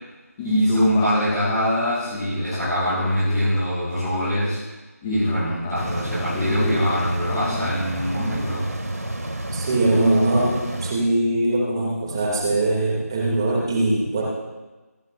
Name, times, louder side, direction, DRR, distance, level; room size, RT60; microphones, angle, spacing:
voice 1, 0.4-4.5 5.0-8.6, equal, ahead, -12 dB, 0.4 m, -23 dB
sound 1, 5.7-10.9, right 1 dB, 65° right, 2.2 m, -30 dB
voice 2, 9.5-14.2, right 2 dB, 15° right, -2 dB, 2.5 m, -21 dB
26.5 x 12.0 x 2.6 m, 1.2 s
figure-of-eight pair, 170°, 9 cm